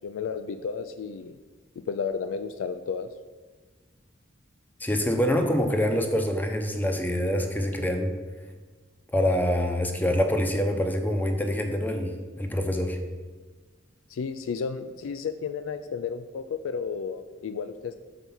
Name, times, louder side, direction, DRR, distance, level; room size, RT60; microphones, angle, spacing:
voice 1, 0.0-1.4 1.9-3.1 14.1-17.9, left 6 dB, 85° left, 10 dB, 0.3 m, -32 dB
voice 2, 4.8-8.1 9.1-12.1 12.4-13.0, equal, 10° left, 4 dB, 0.6 m, -25 dB
5.9 x 4.6 x 5.4 m, 1.4 s
head